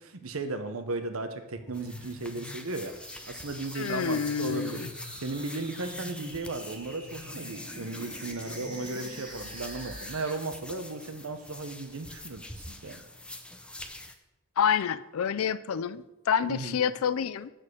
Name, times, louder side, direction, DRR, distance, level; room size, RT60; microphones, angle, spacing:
voice 1, 0.0-2.9 3.3-4.8 5.2-13.0 16.5-16.8, right 3 dB, 75° right, 8 dB, 1.0 m, -35 dB
sound 1, 1.5-10.3, equal, 20° right, 2.1 m, -46 dB
sound 2, 1.7-14.2, left 1 dB, 5° left, 0.6 m, -45 dB
voice 2, 3.8-4.9 14.6-17.5, left 7 dB, 75° left, 17 dB, 0.4 m, -28 dB
7.6 x 6.4 x 6.4 m, 0.98 s
head